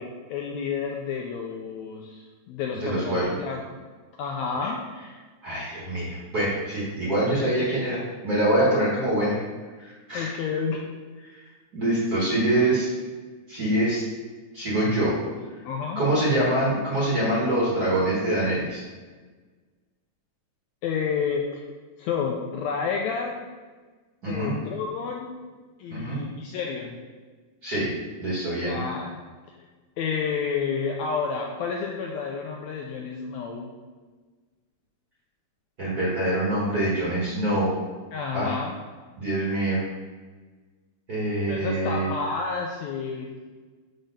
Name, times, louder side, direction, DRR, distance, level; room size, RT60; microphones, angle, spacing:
voice 1, 0.0-3.6 4.2-4.8 7.4-8.0 10.1-10.8 15.0-15.3 15.6-16.0 20.8-21.6 22.0-23.4 24.3-25.3 25.8-27.0 28.6-29.2 30.0-33.7 38.1-38.7 41.5-43.4, left 5 dB, 80° left, 1 dB, 1.6 m, -30 dB
voice 2, 2.8-3.3 4.6-4.7 5.4-9.4 9.8-10.3 11.3-11.4 11.7-12.9 13.5-14.0 14.5-15.1 15.9-18.8 24.2-24.5 25.9-26.2 27.6-27.9 28.2-28.8 35.8-37.7 38.3-38.6 39.2-39.8 41.1-42.1, right 1 dB, 45° right, -8 dB, 1.2 m, -25 dB
5.0 x 4.0 x 5.4 m, 1.4 s
omnidirectional pair, 3.6 m